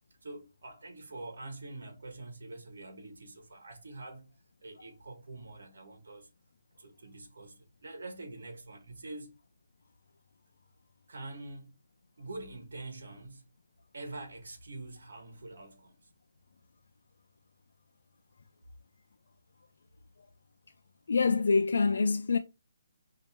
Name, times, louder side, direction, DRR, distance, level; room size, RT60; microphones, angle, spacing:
voice 1, 0.2-4.3 4.6-6.3 6.8-9.3 11.1-11.7 12.2-13.5 13.9-16.0, right 2 dB, 75° right, 1.3 m, -45 dB
voice 2, 21.1-22.4, left 4 dB, 70° left, 0.4 m, -25 dB
5.2 x 2.8 x 2.8 m
hypercardioid pair, 175°, 0 cm